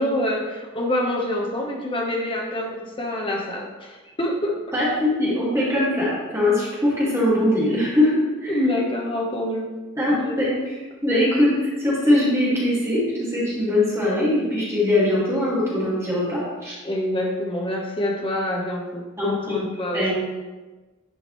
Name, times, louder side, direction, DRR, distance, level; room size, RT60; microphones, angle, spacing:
voice 1, 0.0-4.6 8.5-9.7 10.1-10.4 16.8-20.1, left 1 dB, 25° left, 0 dB, 1.0 m, -26 dB
voice 2, 4.7-8.5 10.0-13.0 13.3-16.7 19.2-19.6 19.9-20.1, left 1 dB, 15° right, -8 dB, 2.0 m, -21 dB
10.5 x 5.0 x 3.1 m, 1.2 s
head